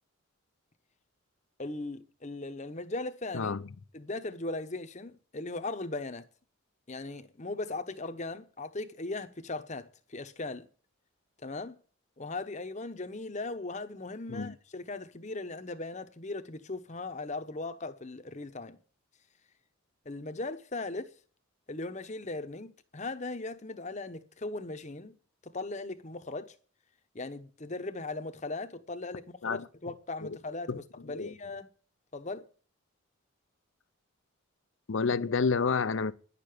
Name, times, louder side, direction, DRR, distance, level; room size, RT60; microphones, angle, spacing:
voice 1, 1.6-3.5 3.9-6.3 6.9-10.7 11.4-11.8 12.2-18.8 20.0-21.1 21.7-25.2 25.4-26.5 27.1-31.7 32.1-32.4, left 2 dB, 35° left, 0.9 m, -38 dB
voice 2, 34.9-36.1, left 4 dB, 65° left, 0.6 m, -29 dB
10.5 x 6.8 x 9.3 m
head